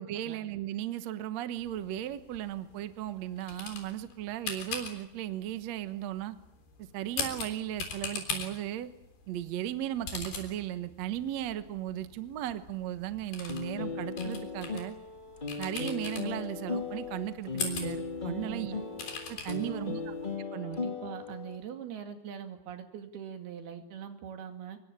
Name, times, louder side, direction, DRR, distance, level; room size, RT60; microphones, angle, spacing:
voice 1, 0.0-6.4 6.8-8.9 9.3-15.0 15.6-18.7 19.3-19.9 20.5-20.8, right 12 dB, 60° right, 11 dB, 1.9 m, -36 dB
sound 1, 1.6-20.4, left 5 dB, 85° left, 5.7 m, -42 dB
sound 2, 13.5-21.6, left 4 dB, 20° left, 1.2 m, -37 dB
voice 2, 18.4-18.8 19.5-20.0 20.6-24.8, right 8 dB, 85° right, 6 dB, 4.3 m, -42 dB
24.5 x 22.0 x 8.9 m, 0.82 s
omnidirectional pair, 4.3 m